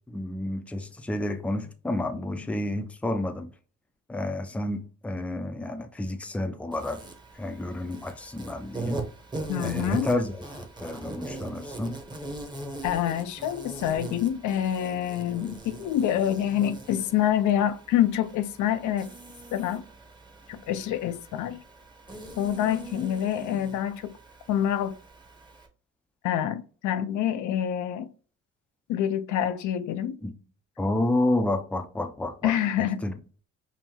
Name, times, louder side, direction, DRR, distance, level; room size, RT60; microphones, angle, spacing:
voice 1, 0.1-3.5 4.1-7.0 7.3-9.0 9.6-10.5 10.8-12.0 30.2-30.3 30.8-33.2, left 1 dB, 5° left, 0.4 m, -30 dB
Insect, 6.7-25.7, right 2 dB, 15° right, 0.9 m, -41 dB
voice 2, 9.5-10.1 12.8-19.1 19.5-19.8 20.5-21.6 22.4-24.1 24.5-24.9 26.2-28.1 28.9-30.2 32.4-33.0, left 10 dB, 75° left, 0.5 m, -26 dB
5.5 x 2.0 x 2.9 m
cardioid pair, 90°, 30 cm